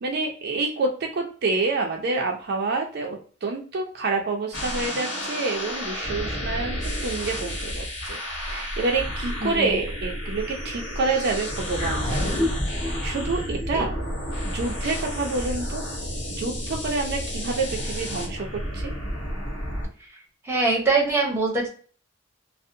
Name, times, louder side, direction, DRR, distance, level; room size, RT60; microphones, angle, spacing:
voice 1, 0.0-12.4 12.8-13.9 14.4-15.8 16.3-18.9, right 3 dB, 50° right, 2 dB, 0.4 m, -28 dB
sound 1, 4.5-19.9, equal, 80° left, 1.1 m, -31 dB
voice 2, 9.4-9.8 13.7-13.9 20.0-20.1 20.4-21.7, right 3 dB, 10° right, -1 dB, 0.6 m, -23 dB
sound 2, 11.8-16.4, left 1 dB, 30° left, 0.7 m, -31 dB
2.6 x 2.0 x 2.5 m, 0.42 s
head